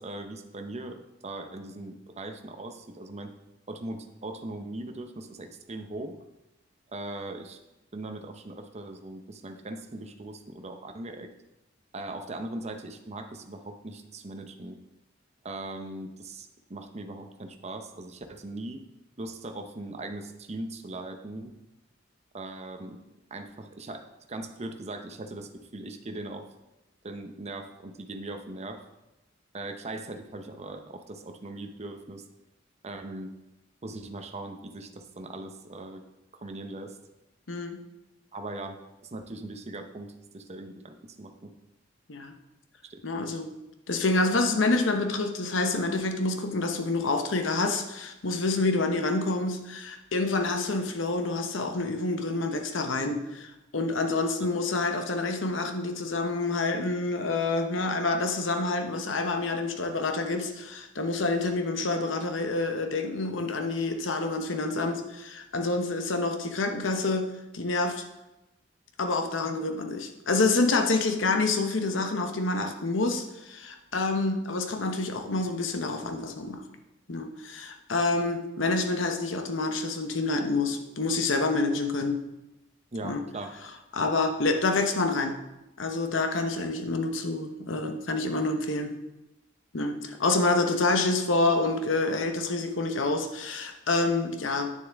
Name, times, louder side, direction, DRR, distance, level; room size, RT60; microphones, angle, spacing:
voice 1, 0.0-3.3 3.7-6.2 6.9-7.6 7.9-11.3 11.9-14.8 15.4-18.8 19.2-21.5 22.3-23.0 23.3-26.5 27.0-28.9 29.5-32.2 32.8-33.3 33.8-36.0 36.4-37.0 38.3-38.8 39.0-41.5 42.8-43.0 82.9-83.6, right 2 dB, 35° right, 6 dB, 0.7 m, -39 dB
voice 2, 37.5-37.8 42.1-42.3 43.0-43.5 43.9-68.0 69.0-76.6 77.1-82.2 83.0-83.2 83.9-85.4 85.8-88.9 89.7-94.7, left 3 dB, 75° left, 6 dB, 0.9 m, -27 dB
9.2 x 6.8 x 3.5 m, 0.96 s
head